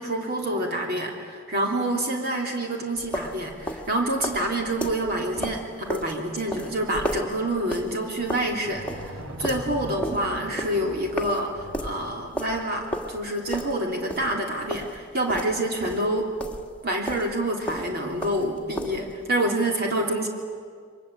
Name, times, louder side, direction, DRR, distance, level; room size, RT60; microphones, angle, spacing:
voice 1, 0.0-16.3 16.8-20.3, right 1 dB, 50° right, 1 dB, 3.2 m, -27 dB
sound 1, 3.0-16.8 17.0-19.2, equal, 5° left, 1.9 m, -34 dB
sound 2, 8.2-8.3 8.5-12.3, equal, 85° right, 4.2 m, -39 dB
29.5 x 23.5 x 8.4 m, 2.1 s
head